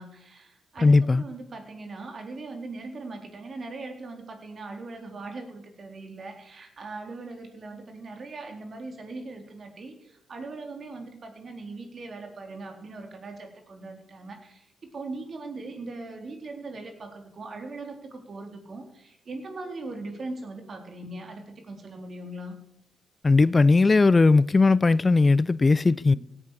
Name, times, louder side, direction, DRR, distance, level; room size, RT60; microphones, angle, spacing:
voice 1, 0.0-22.5 25.9-26.2, right 3 dB, 50° right, 4.0 m, -40 dB
voice 2, 0.8-1.2 23.2-26.1, left 3 dB, 35° left, 0.5 m, -18 dB
17.0 x 11.0 x 6.6 m
hypercardioid pair, 45°, 0 cm